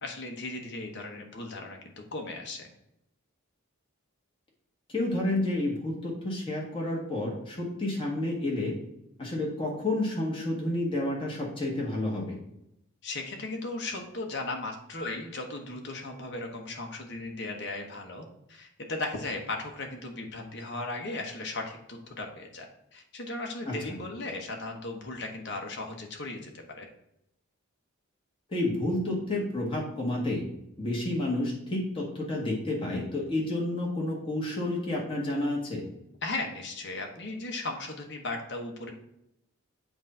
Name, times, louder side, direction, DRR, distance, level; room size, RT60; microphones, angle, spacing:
voice 1, 0.0-1.8 2.1-2.7 13.0-22.7 22.9-26.9 36.2-38.9, left 2 dB, 50° left, 2 dB, 1.0 m, -36 dB
voice 2, 4.9-8.7 9.2-12.4 23.6-24.0 28.5-30.4 30.8-35.8, left 1 dB, 25° left, -3 dB, 1.5 m, -30 dB
7.9 x 2.6 x 5.5 m, 0.81 s
head